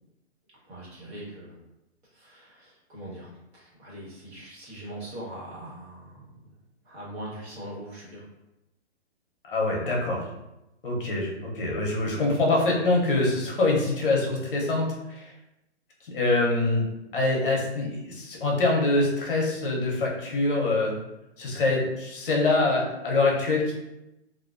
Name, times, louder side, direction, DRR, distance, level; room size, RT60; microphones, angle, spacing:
voice 1, 0.6-1.6 2.1-6.5 6.8-8.2, right 1 dB, 65° right, -5 dB, 1.2 m, -41 dB
voice 2, 9.5-10.2 10.8-15.3 16.0-16.8 17.1-21.0 21.4-23.8, left 2 dB, 50° left, -1 dB, 0.7 m, -24 dB
2.4 x 2.1 x 2.4 m, 0.91 s
hypercardioid pair, 170°, 34 cm